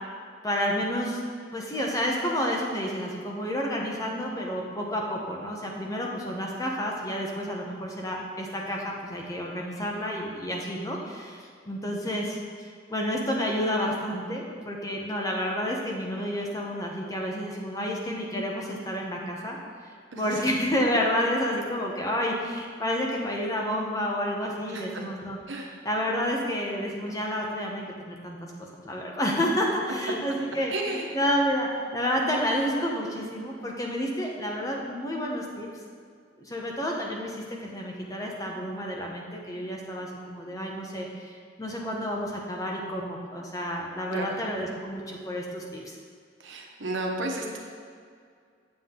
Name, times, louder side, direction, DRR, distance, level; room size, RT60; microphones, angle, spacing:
voice 1, 0.4-1.2 1.5-19.6 19.8-25.4 25.8-28.5 28.8-35.7 36.4-46.0, equal, 20° left, -1 dB, 1.0 m, -30 dB
voice 2, 24.7-25.1 25.5-25.7 30.7-31.1 44.1-44.4 46.4-47.6, right 2 dB, 90° right, 1 dB, 1.2 m, -33 dB
7.6 x 7.5 x 3.8 m, 2.2 s
head